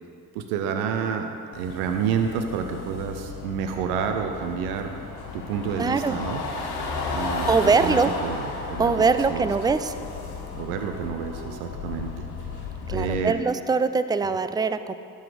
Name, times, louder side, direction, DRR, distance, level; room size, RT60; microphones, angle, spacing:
voice 1, 0.3-4.9 5.3-6.4 7.1-9.5 10.6-12.3 12.9-13.4, right 6 dB, 85° right, 5 dB, 0.8 m, -29 dB
sound 1, 1.5-13.2, left 4 dB, 65° left, 1.5 m, -34 dB
voice 2, 5.8-6.2 7.5-8.1 8.8-9.9 12.9-14.9, right 4 dB, 10° right, 11 dB, 0.4 m, -22 dB
12.0 x 4.1 x 7.7 m, 2.5 s
hypercardioid pair, 55°, 41 cm